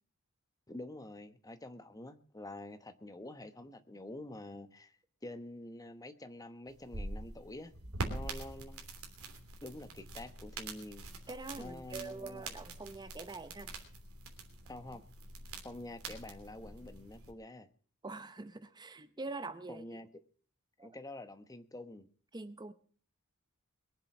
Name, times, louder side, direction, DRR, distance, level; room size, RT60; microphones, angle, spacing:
voice 1, 0.7-5.0 5.2-7.7 8.1-8.9 9.6-11.1 11.6-12.5 14.7-15.0 15.6-17.7 19.7-20.1 20.8-22.1, left 1 dB, 15° left, 10 dB, 1.1 m, -47 dB
sound 1, 6.7-17.3, right 2 dB, 70° right, 3.1 m, -45 dB
voice 2, 11.3-13.7 18.0-19.9 20.8-21.0 22.3-22.7, right 3 dB, 20° right, 12 dB, 0.7 m, -44 dB
22.5 x 7.6 x 6.0 m, 0.43 s
head